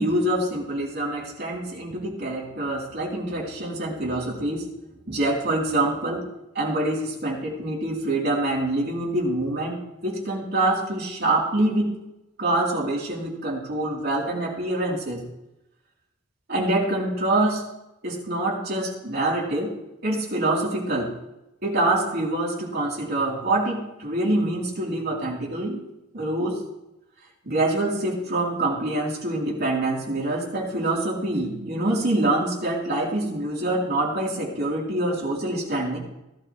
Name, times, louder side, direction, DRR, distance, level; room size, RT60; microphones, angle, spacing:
voice 1, 0.0-4.7 5.1-6.3 6.5-11.9 12.4-15.2 16.5-17.6 18.0-19.7 20.0-21.1 21.6-25.8 26.1-26.6 27.4-36.0, right 2 dB, 55° right, -2 dB, 3.3 m, -25 dB
16.5 x 11.5 x 3.1 m, 0.90 s
head